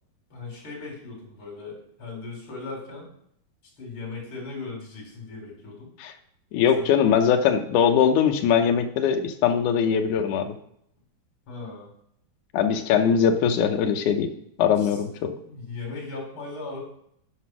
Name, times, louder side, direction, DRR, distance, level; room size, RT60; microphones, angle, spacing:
voice 1, 0.3-3.1 3.8-5.9 6.8-6.9 11.5-11.9 14.7-15.0 15.4-16.8, left 3 dB, 35° left, -3 dB, 4.3 m, -38 dB
voice 2, 6.5-10.6 12.5-14.3 14.6-15.3, left 7 dB, 75° left, 4 dB, 1.9 m, -21 dB
10.0 x 5.3 x 6.1 m, 0.71 s
omnidirectional pair, 4.6 m